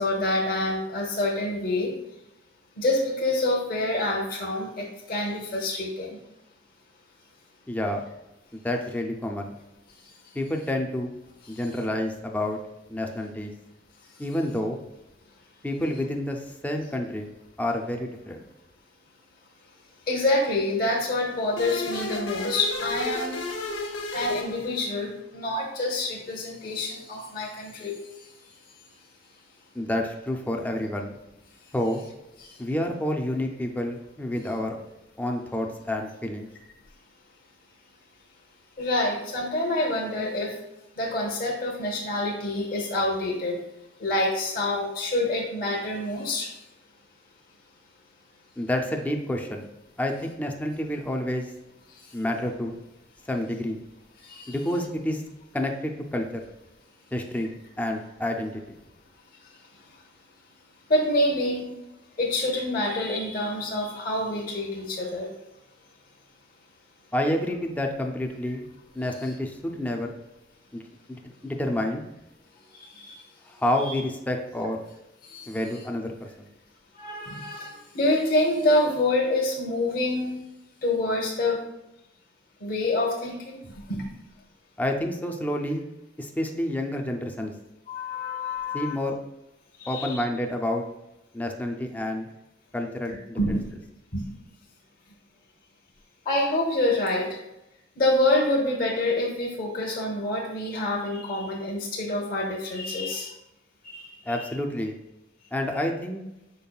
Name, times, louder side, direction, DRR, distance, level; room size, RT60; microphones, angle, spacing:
voice 1, 0.0-2.0 2.8-6.2 11.6-11.7 20.1-23.4 23.9-28.0 32.4-32.5 38.8-40.5 41.0-43.6 44.0-46.5 54.3-54.6 60.9-61.7 62.2-65.3 69.2-69.3 72.8-73.2 73.8-74.0 75.2-75.5 77.0-80.4 80.8-81.6 82.6-83.6 83.9-84.0 87.9-89.0 89.8-90.2 93.1-93.7 94.1-94.2 96.3-97.4 98.0-103.3 103.8-104.5, left 1 dB, 50° left, -1 dB, 0.8 m, -27 dB
voice 2, 7.7-8.0 8.5-9.5 10.3-11.1 11.5-12.6 12.9-13.5 14.2-14.8 15.6-17.3 17.6-18.4 29.7-31.1 31.7-32.0 32.6-34.8 35.2-36.5 48.6-49.7 50.0-51.5 52.1-52.8 53.3-53.8 54.5-55.2 55.5-56.4 57.1-58.8 67.1-68.6 68.9-70.1 70.7-70.8 71.1-72.0 73.5-74.8 75.5-76.5 84.8-85.8 86.2-87.5 88.7-89.2 89.9-90.8 91.3-92.3 92.7-93.6 104.3-105.0 105.5-106.2, left 1 dB, 10° left, 2 dB, 0.4 m, -29 dB
sound 1, 21.6-25.2, left 2 dB, 80° left, 0.9 m, -32 dB
5.3 x 4.4 x 2.3 m, 0.91 s
head